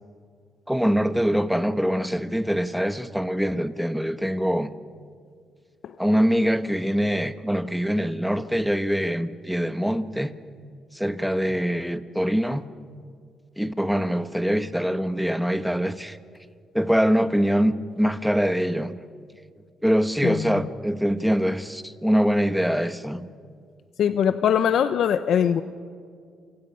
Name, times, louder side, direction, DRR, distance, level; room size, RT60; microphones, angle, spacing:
voice 1, 0.7-4.7 6.0-10.3 10.9-12.7 13.6-16.2 16.7-19.0 19.8-23.3, equal, ahead, 1.2 m, -24 dB
voice 2, 20.2-20.6 24.0-25.6, left 8 dB, 70° left, 0.9 m, -22 dB
28.5 x 25.5 x 5.7 m
cardioid pair, 90°, 0 cm